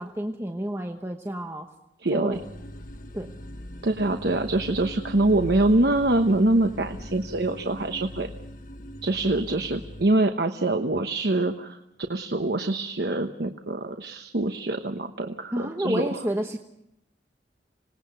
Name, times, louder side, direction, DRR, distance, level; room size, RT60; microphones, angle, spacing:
voice 1, 0.0-1.7 2.1-2.4 3.1-3.3 15.5-16.6, right 1 dB, 15° right, 4 dB, 1.0 m, -30 dB
voice 2, 2.0-2.4 3.8-8.3 9.0-11.8 12.1-16.2, right 2 dB, 65° right, 7 dB, 1.1 m, -24 dB
sound 1, 2.3-10.0, equal, 50° left, 1.4 m, -40 dB
26.5 x 19.5 x 6.9 m, 0.82 s
head